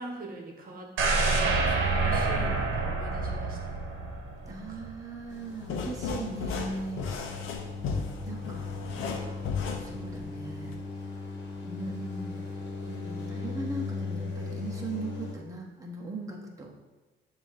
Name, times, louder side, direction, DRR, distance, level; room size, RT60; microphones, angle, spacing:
voice 1, 0.0-3.6 4.4-4.8 11.9-12.5, right 2 dB, 45° right, 1 dB, 1.1 m, -42 dB
sound 1, 1.0-5.0 5.3-5.4, right 3 dB, 85° right, 1.0 m, -27 dB
voice 2, 4.5-7.1 8.3-9.5 9.8-10.7 11.6-11.9 12.8-16.7, right 2 dB, 15° right, -2 dB, 1.1 m, -39 dB
sound 2, 5.3-15.3, left 4 dB, 60° left, 1.4 m, -38 dB
sound 3, 5.6-10.8, left 5 dB, 85° left, 0.8 m, -35 dB
6.9 x 2.8 x 5.8 m, 1.2 s
cardioid pair, 90°, 20 cm